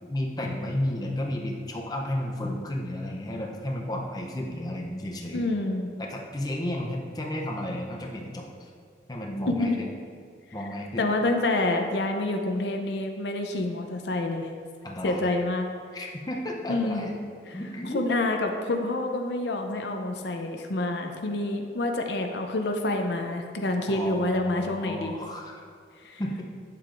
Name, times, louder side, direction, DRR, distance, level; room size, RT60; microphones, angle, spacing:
voice 1, 0.0-5.5 6.0-8.7 9.1-9.9 10.5-11.1 14.8-15.2 15.9-17.1 17.5-18.1 23.9-25.6 26.2-26.4, left 1 dB, 20° left, -1 dB, 0.6 m, -32 dB
voice 2, 5.3-5.9 9.5-9.8 11.0-14.5 15.0-15.7 16.7-17.1 17.5-17.6 17.9-25.1 26.0-26.2, left 2 dB, 75° left, 4 dB, 0.6 m, -27 dB
8.6 x 7.4 x 2.5 m, 2.2 s
head